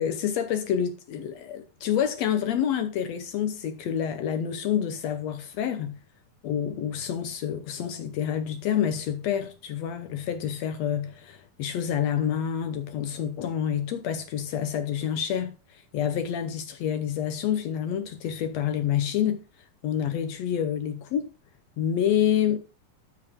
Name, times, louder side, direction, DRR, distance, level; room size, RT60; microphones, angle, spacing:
voice 1, 0.0-6.0 6.4-19.4 19.8-21.3 21.8-22.6, left 9 dB, 75° left, 1.6 m, -28 dB
14.0 x 4.8 x 3.6 m
omnidirectional pair, 4.0 m